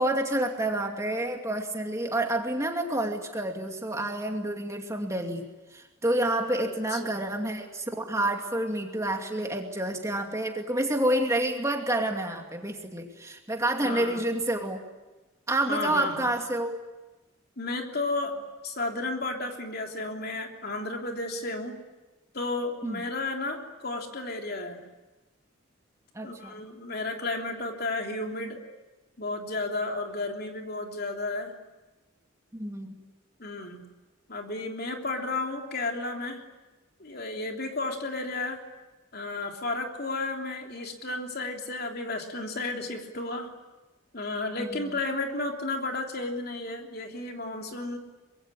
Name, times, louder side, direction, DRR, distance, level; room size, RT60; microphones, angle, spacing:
voice 1, 0.0-14.8 15.5-16.8 22.8-23.0 26.1-26.6 32.5-33.0 44.6-44.9, right 1 dB, 15° right, 3 dB, 2.5 m, -29 dB
voice 2, 6.5-7.2 13.8-14.2 15.7-16.3 17.6-21.8 22.3-24.8 26.2-28.6 29.2-31.5 33.4-33.8 34.3-36.4 37.0-38.6 39.1-43.5 44.1-48.0, left 2 dB, 50° left, 3 dB, 3.3 m, -33 dB
25.0 x 22.5 x 9.9 m, 1.1 s
head